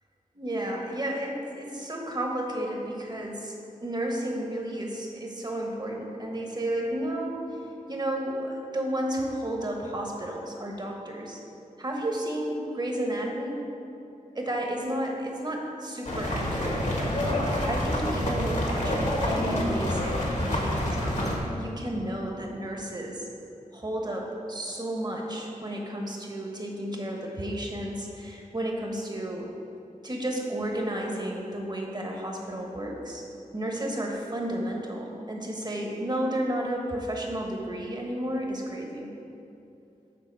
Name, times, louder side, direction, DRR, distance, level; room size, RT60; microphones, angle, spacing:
voice 1, 0.3-3.5 3.8-7.6 7.9-11.4 11.8-13.6 14.3-17.2 17.7-23.2 23.7-29.5 30.0-33.2 33.5-39.1, right 1 dB, 30° right, 0 dB, 1.2 m, -32 dB
sound 1, 16.0-21.4, left 1 dB, 60° left, 1.4 m, -27 dB
8.5 x 4.0 x 6.1 m, 2.8 s
wide cardioid pair, 75°, 14 cm